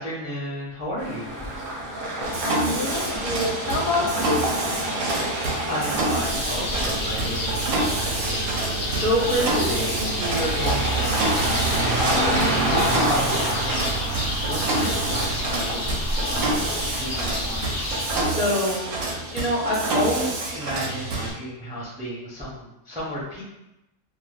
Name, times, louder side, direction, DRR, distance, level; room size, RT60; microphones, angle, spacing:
voice 1, 0.0-1.3 5.7-15.9 16.2-17.6 18.2-23.4, equal, 10° right, -7 dB, 0.3 m, -30 dB
sound 1, 1.0-18.0, right 1 dB, 55° right, 0.6 m, -29 dB
Mechanisms, 2.2-21.3, right 2 dB, 70° right, 1.0 m, -28 dB
voice 2, 2.4-4.5, left 2 dB, 75° left, 1 dB, 1.0 m, -27 dB
sound 2, 6.1-18.2, left 1 dB, 55° left, 0.6 m, -30 dB
2.6 x 2.1 x 3.1 m, 0.91 s
omnidirectional pair, 1.5 m